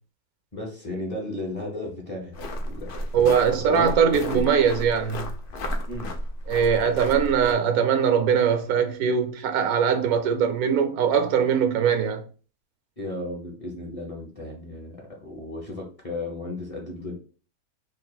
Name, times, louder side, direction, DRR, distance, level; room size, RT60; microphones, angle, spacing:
voice 1, 0.5-3.9 4.3-4.5 5.9-6.1 13.0-17.1, left 1 dB, 30° left, 0.7 m, -34 dB
sound 1, 2.3-7.5, equal, 65° left, 0.5 m, -33 dB
voice 2, 3.1-5.3 6.5-12.2, right 7 dB, 80° right, 1.1 m, -21 dB
3.2 x 2.5 x 4.0 m
omnidirectional pair, 1.6 m